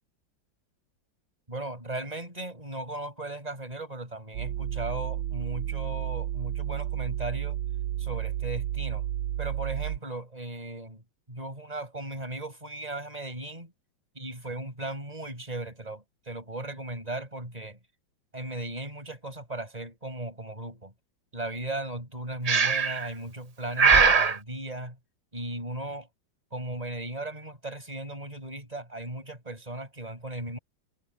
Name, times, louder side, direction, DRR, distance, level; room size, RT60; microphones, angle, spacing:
voice 1, 1.5-7.6 8.0-9.1 9.4-11.0 11.3-13.7 14.2-17.8 18.3-20.9 21.3-25.0 25.3-26.1 26.5-30.6, right 1 dB, 20° right, 7.1 m, -37 dB
sound 1, 4.3-10.0, right 12 dB, 85° right, 1.4 m, -32 dB
Breathing, 22.5-23.1 23.8-24.4, right 5 dB, 55° right, 0.4 m, -20 dB
omnidirectional pair, 2.2 m